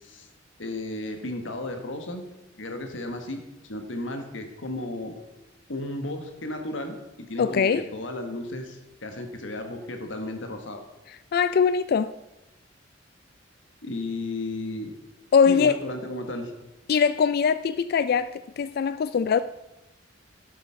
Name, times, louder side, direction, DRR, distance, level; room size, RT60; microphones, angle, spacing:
voice 1, 0.6-2.2 2.6-3.4 3.7-5.1 5.7-7.0 7.3-10.8 13.8-14.9 15.5-16.5, left 1 dB, 90° left, 1.6 m, -34 dB
voice 2, 7.4-7.8 11.3-12.1 15.3-15.8 16.9-19.4, left 6 dB, 55° left, 0.3 m, -22 dB
11.5 x 8.2 x 5.8 m
head